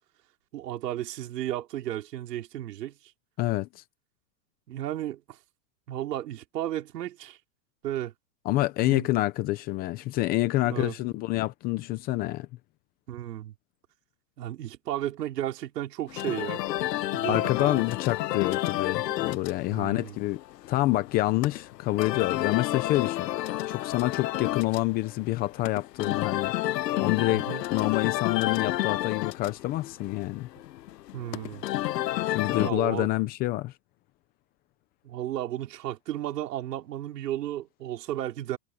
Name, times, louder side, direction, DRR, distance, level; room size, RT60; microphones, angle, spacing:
voice 1, 0.5-3.0 4.7-5.4 5.9-7.4 7.8-8.1 8.8-9.1 10.6-11.0 13.1-13.5 14.4-16.6 17.1-17.8 19.7-20.2 27.3-27.6 31.1-31.7 32.5-33.1 35.0-38.6, right 13 dB, 75° right, 4.0 m, -34 dB
voice 2, 3.4-3.8 8.5-12.5 17.3-26.5 27.0-30.5 32.3-33.7, left 17 dB, 20° left, 0.6 m, -27 dB
sound 1, 16.1-32.7, left 15 dB, 80° left, 1.0 m, -31 dB
supercardioid pair, 155°, 48 cm